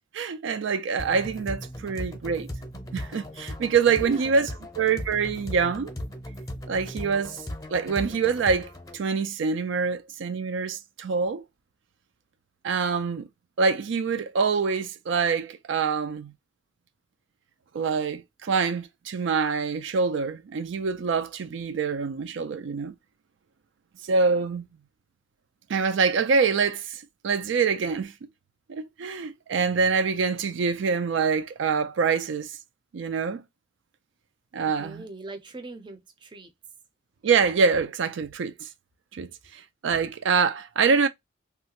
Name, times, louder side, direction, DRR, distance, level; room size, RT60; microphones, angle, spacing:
voice 1, 0.1-2.5 2.9-5.9 6.7-7.4 7.7-11.4 12.6-13.3 13.6-16.3 17.7-22.9 24.0-24.7 25.7-28.1 28.7-32.6 32.9-33.4 34.5-35.1 37.2-38.7 39.1-41.1, right 5 dB, 80° right, 0.4 m, -25 dB
sound 1, 1.0-9.0, left 1 dB, 15° left, 0.7 m, -38 dB
voice 2, 4.0-4.4 34.6-36.5, right 2 dB, 25° right, 0.5 m, -42 dB
3.2 x 2.3 x 2.9 m
head